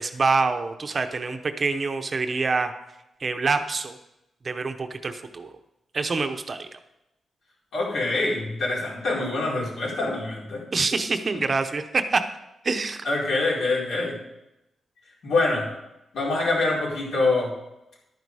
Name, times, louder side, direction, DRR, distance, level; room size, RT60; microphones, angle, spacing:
voice 1, 0.0-2.7 3.2-4.0 4.4-5.5 5.9-6.7 10.7-12.2 12.6-13.0, right 4 dB, 35° right, 7 dB, 0.7 m, -26 dB
voice 2, 7.7-10.6 13.0-14.1 15.2-15.7 16.1-17.5, left 2 dB, 70° left, -4 dB, 4.5 m, -25 dB
11.0 x 9.5 x 4.8 m, 0.89 s
wide cardioid pair, 155°, 0 cm